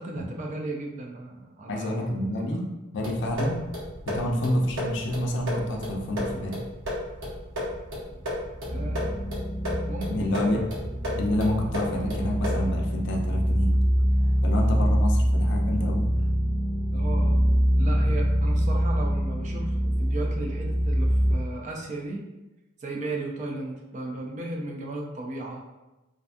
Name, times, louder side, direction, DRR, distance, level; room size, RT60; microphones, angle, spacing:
voice 1, 0.0-2.1 2.3-2.4 8.7-9.3 9.9-10.6 16.9-17.4 17.8-22.2 22.8-25.6, right 2 dB, 35° right, 0 dB, 0.3 m, -35 dB
voice 2, 1.7-3.6 4.1-6.6 10.1-10.6 11.1-13.8 14.4-16.1, left 1 dB, 55° left, 0 dB, 0.4 m, -28 dB
sound 1, 3.0-12.8, left 1 dB, 60° right, 0.7 m, -34 dB
sound 2, 8.7-21.3, equal, ahead, 0.6 m, -24 dB
2.5 x 2.3 x 2.5 m, 1.0 s
head